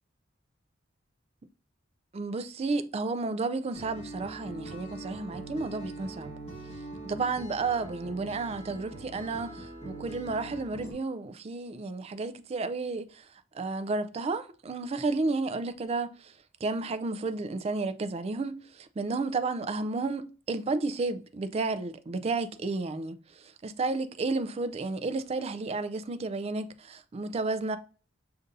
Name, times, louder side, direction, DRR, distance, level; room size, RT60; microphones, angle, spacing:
voice 1, 2.1-6.3 7.0-13.3 13.5-16.3 16.6-27.8, right 3 dB, 30° right, 0.3 m, -32 dB
Acoustic guitar, 3.7-10.9, right 2 dB, 30° left, 1.5 m, -43 dB
6.6 x 2.6 x 2.5 m
head